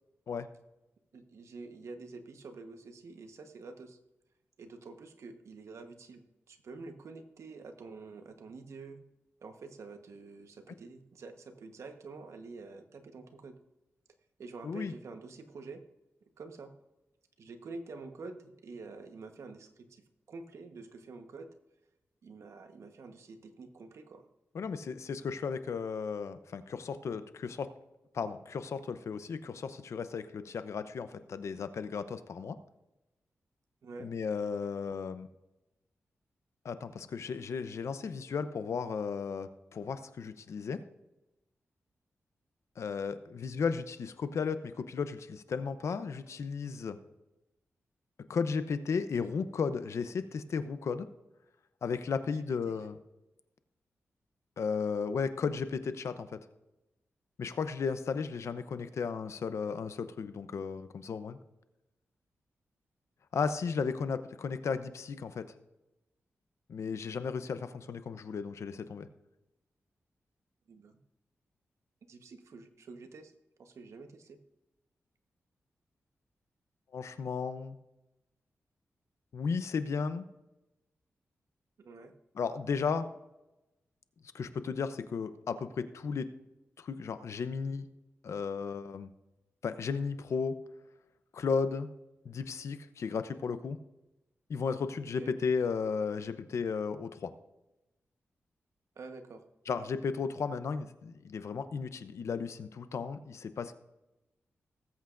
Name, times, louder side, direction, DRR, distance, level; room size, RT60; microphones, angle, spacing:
voice 1, 1.1-4.0 4.6-9.0 9.4-13.6 14.4-15.8 16.4-16.7 17.4-21.5 22.2-24.2 33.8-34.1 52.6-52.8 70.7-71.0 72.1-73.3 73.6-74.4 81.8-82.1 95.2-95.3 99.0-99.4, right 3 dB, 75° right, 6 dB, 1.2 m, -47 dB
voice 2, 24.5-27.7 28.1-32.6 34.0-35.3 36.6-40.8 42.8-47.0 48.3-51.1 51.8-53.0 54.6-56.4 57.4-61.4 63.3-65.5 66.7-69.1 76.9-77.8 79.3-80.2 82.3-83.1 84.3-86.3 86.8-87.9 88.2-89.1 89.6-90.6 91.3-91.9 92.2-93.8 94.5-97.3 99.7-103.7, left 5 dB, 70° left, 11 dB, 0.7 m, -34 dB
19.0 x 8.2 x 2.6 m, 0.96 s
cardioid pair, 75°, 5 cm